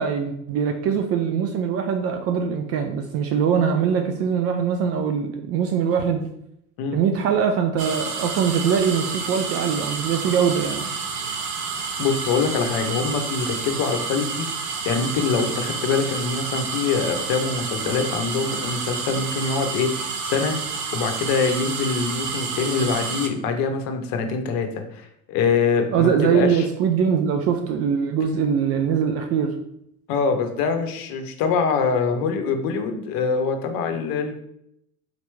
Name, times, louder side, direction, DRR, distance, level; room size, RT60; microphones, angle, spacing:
voice 1, 0.0-6.2 6.9-10.9 25.9-29.5, right 7 dB, 35° right, 5 dB, 0.4 m, -22 dB
sound 1, 7.8-23.3, right 5 dB, 75° right, 0.8 m, -29 dB
voice 2, 12.0-20.6 20.9-26.7 30.1-34.4, left 5 dB, 50° left, 5 dB, 0.9 m, -24 dB
4.1 x 3.0 x 3.3 m, 0.76 s
hypercardioid pair, 80°, 46 cm